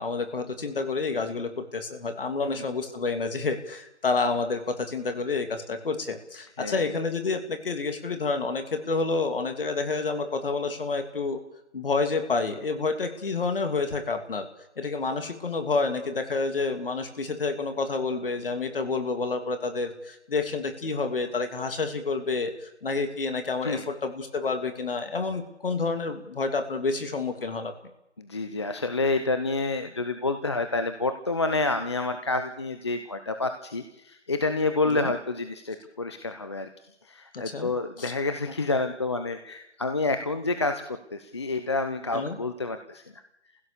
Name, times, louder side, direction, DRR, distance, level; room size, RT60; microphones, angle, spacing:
voice 1, 0.0-11.4 11.7-14.5 14.8-27.7 34.9-35.1 37.3-37.7 38.0-38.1 42.1-42.4, left 4 dB, 50° left, 7 dB, 2.8 m, -29 dB
voice 2, 6.6-6.9 23.6-23.9 28.2-36.7 37.0-43.2, left 3 dB, 25° left, 8 dB, 0.7 m, -28 dB
26.0 x 16.0 x 6.9 m, 0.85 s
figure-of-eight pair, 160°, 35 cm